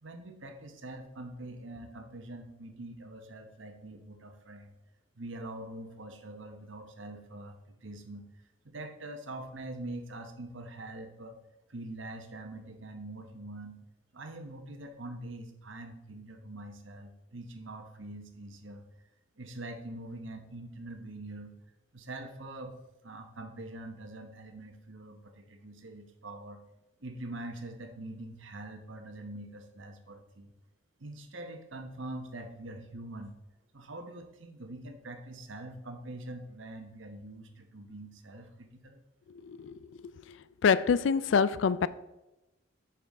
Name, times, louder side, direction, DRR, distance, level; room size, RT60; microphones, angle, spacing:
voice 1, 0.0-4.8 5.1-8.3 8.6-11.3 11.7-13.8 14.1-18.9 19.4-21.5 21.9-22.7 23.0-26.6 27.0-30.5 31.0-33.4 33.7-39.0, right 2 dB, 75° right, 5 dB, 1.1 m, -44 dB
voice 2, 39.4-39.7 40.6-41.9, left 6 dB, 70° left, 17 dB, 0.4 m, -25 dB
8.7 x 6.0 x 3.6 m, 0.97 s
head